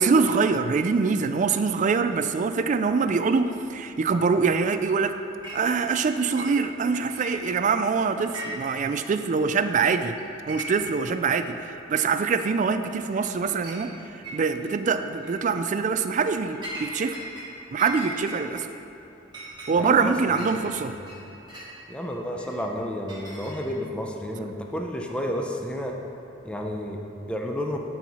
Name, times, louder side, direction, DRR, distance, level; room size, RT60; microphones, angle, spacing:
voice 1, 0.0-5.2 5.5-10.2 10.5-17.2 17.7-18.7 19.7-20.9, right 5 dB, 40° right, 10 dB, 0.3 m, -24 dB
Chink clink, 5.4-5.6 5.9-6.8 7.1-7.8 8.2-8.8 9.1-9.2 9.8-9.9 10.2-11.0 11.4-11.5 12.4-12.5 12.9-13.3 13.6-13.8 14.2-14.7 15.1-15.4 15.9-17.5 17.8-21.7 22.4-23.9, right 1 dB, 25° right, 1.6 m, -39 dB
voice 2, 19.8-20.5 20.9-21.1 21.9-25.9 26.4-27.8, equal, 5° left, 1 dB, 0.6 m, -31 dB
11.5 x 4.6 x 4.2 m, 2.9 s
head